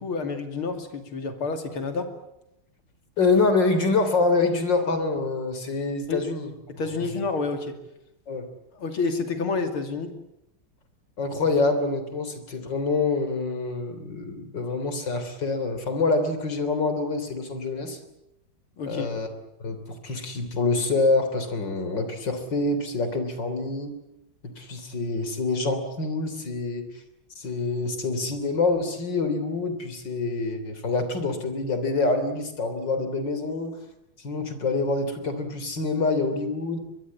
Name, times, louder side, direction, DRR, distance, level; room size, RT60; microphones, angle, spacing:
voice 1, 0.0-2.1 6.1-6.3 6.7-7.8 8.7-10.2 18.8-19.1, left 4 dB, 90° left, 7 dB, 3.5 m, -29 dB
voice 2, 3.2-6.5 8.3-8.5 11.2-18.0 18.9-19.3 19.6-19.8 20.0-23.9 24.6-26.9 27.4-33.7 34.2-36.8, left 3 dB, 60° left, 9 dB, 4.0 m, -26 dB
23.5 x 22.5 x 8.6 m, 0.85 s
omnidirectional pair, 2.3 m